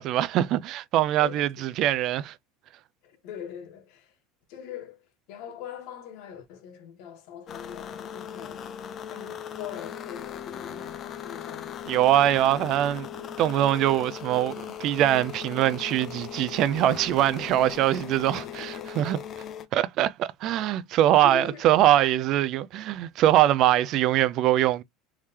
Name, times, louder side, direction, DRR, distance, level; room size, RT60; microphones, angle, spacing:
voice 1, 0.0-2.3 11.9-14.5 14.8-19.2 19.7-24.8, right 13 dB, 40° right, 0.3 m, -23 dB
voice 2, 1.2-1.6 3.0-4.2 4.5-8.7 9.1-12.0 18.3-19.1 20.8-20.9 21.2-21.7, left 9 dB, 55° left, 1.3 m, -42 dB
sound 1, 7.5-19.7, left 9 dB, 30° left, 0.4 m, -39 dB
3.5 x 3.2 x 2.8 m
cardioid pair, 170°, 0 cm